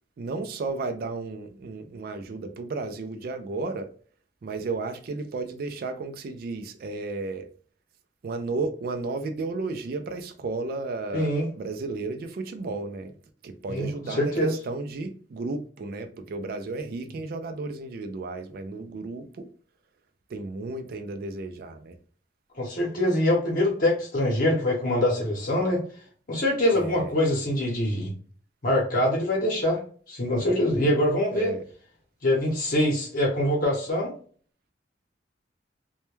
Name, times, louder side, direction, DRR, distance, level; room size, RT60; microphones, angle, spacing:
voice 1, 0.2-3.9 4.4-7.5 8.2-13.1 13.4-19.5 20.3-21.9 26.7-27.1 31.3-31.6, right 3 dB, 55° right, 0.3 m, -33 dB
voice 2, 11.1-11.5 13.7-14.5 22.6-25.8 26.3-28.1 28.6-29.8 30.1-31.5 32.2-34.1, left 1 dB, 50° left, 0.8 m, -24 dB
2.2 x 2.1 x 3.0 m
head